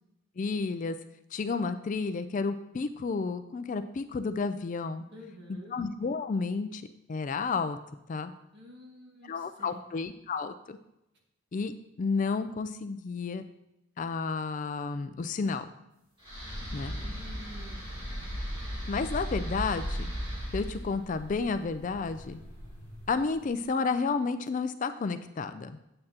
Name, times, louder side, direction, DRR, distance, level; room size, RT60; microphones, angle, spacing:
voice 1, 0.4-1.0 1.3-5.0 5.7-7.8 8.1-8.3 9.2-10.8 11.5-11.7 12.0-13.4 14.0-15.7 16.7-16.9 18.9-20.1 20.5-22.4 23.1-25.8, left 4 dB, 35° left, 11 dB, 0.3 m, -31 dB
voice 2, 5.1-5.7 8.5-9.8 16.9-17.8, equal, 55° right, -1 dB, 1.7 m, -49 dB
sound 1, 16.2-23.4, equal, 25° right, 3.3 m, -37 dB
8.6 x 7.6 x 2.9 m, 0.86 s
head